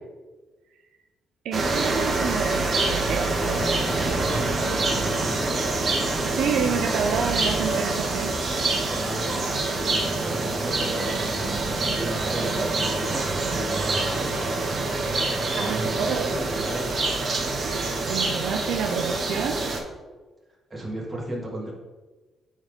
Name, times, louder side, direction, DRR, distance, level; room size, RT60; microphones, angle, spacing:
voice 1, 1.4-3.3 6.3-8.4 15.6-16.3 17.6-19.6, right 6 dB, 80° right, 4 dB, 0.6 m, -29 dB
sound 1, 1.5-19.8, right 3 dB, 45° right, 1.4 m, -26 dB
sound 2, 3.4-10.6, left 1 dB, 15° left, 2.0 m, -38 dB
voice 2, 4.1-5.7 8.8-16.9 20.7-21.7, right 1 dB, 20° right, -3 dB, 2.2 m, -35 dB
9.5 x 3.7 x 3.7 m, 1.3 s
cardioid pair, 90°, 0 cm